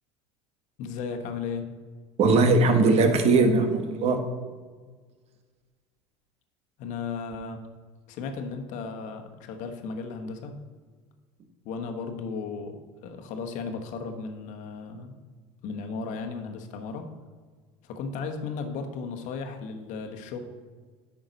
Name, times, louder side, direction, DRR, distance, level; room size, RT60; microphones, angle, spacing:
voice 1, 0.8-1.7 6.8-7.6 8.1-10.5 11.6-15.2 15.6-17.0 17.8-20.4, left 5 dB, 60° left, 5 dB, 1.2 m, -35 dB
voice 2, 2.2-4.2, right 3 dB, 45° right, 6 dB, 1.2 m, -20 dB
8.9 x 5.9 x 4.0 m, 1.5 s
supercardioid pair, 100°, 15 cm